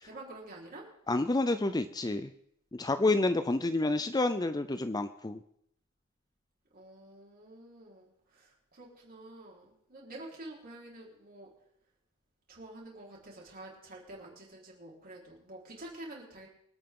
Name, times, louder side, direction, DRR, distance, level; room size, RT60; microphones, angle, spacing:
voice 1, 0.0-0.9 6.7-11.5 12.5-16.5, right 1 dB, 45° right, -3 dB, 4.3 m, -48 dB
voice 2, 1.1-2.3 2.7-5.4, left 2 dB, 20° left, 10 dB, 0.5 m, -29 dB
25.5 x 9.0 x 3.8 m, 0.70 s
head